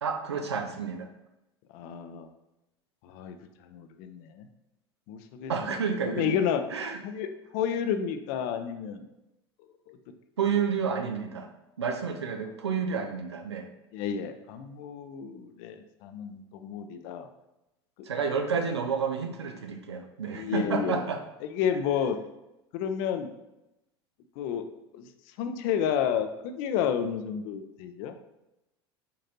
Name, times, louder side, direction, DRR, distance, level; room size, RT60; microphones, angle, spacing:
voice 1, 0.0-1.1 5.5-6.3 6.7-7.0 10.4-11.5 11.8-13.7 18.1-21.2, right 6 dB, 80° right, 5 dB, 0.5 m, -30 dB
voice 2, 1.7-2.3 3.0-3.4 3.7-4.5 5.1-5.8 6.1-6.6 7.0-9.0 9.9-10.0 13.9-17.3 20.3-21.0 21.4-22.2 22.7-23.3 24.4-24.7 24.9-25.1 25.4-28.2, left 8 dB, 55° left, 8 dB, 0.4 m, -31 dB
5.2 x 2.7 x 2.8 m, 0.92 s
figure-of-eight pair, 75°, 14 cm